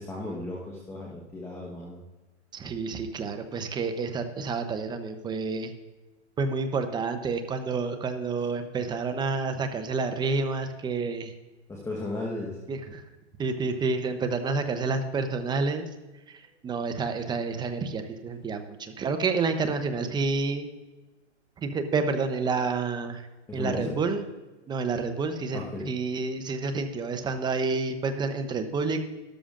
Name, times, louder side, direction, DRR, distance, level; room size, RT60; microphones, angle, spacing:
voice 1, 0.0-2.0 11.7-12.6 23.5-24.0 25.5-25.9, left 2 dB, 10° left, -3 dB, 1.2 m, -35 dB
voice 2, 2.5-5.7 6.4-11.3 12.7-13.0 13.4-15.9 16.3-20.7 21.6-23.2 23.5-24.3 24.7-29.0, right 4 dB, 10° right, 8 dB, 0.7 m, -29 dB
13.0 x 12.5 x 2.5 m, 1.2 s
hypercardioid pair, 140°, 35 cm